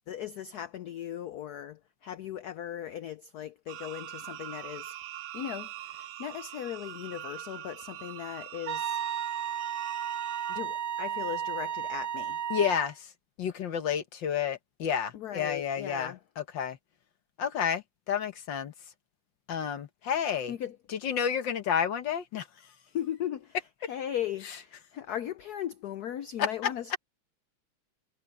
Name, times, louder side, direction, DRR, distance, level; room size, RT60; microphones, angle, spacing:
voice 1, 0.0-5.0 5.3-9.0 10.5-12.4 15.1-16.2 20.5-20.8 22.9-27.0, left 10 dB, 85° left, 0.8 m, -38 dB
sound 1, 3.7-10.6, right 13 dB, 80° right, 1.7 m, -43 dB
Wind instrument woodwind instrument, 8.7-12.9, right 9 dB, 55° right, 1.0 m, -33 dB
voice 2, 12.5-13.1 13.4-16.8 17.4-18.7 19.5-20.5 21.0-22.5 26.4-26.7, left 8 dB, 60° left, 1.7 m, -30 dB
omnidirectional pair, 2.4 m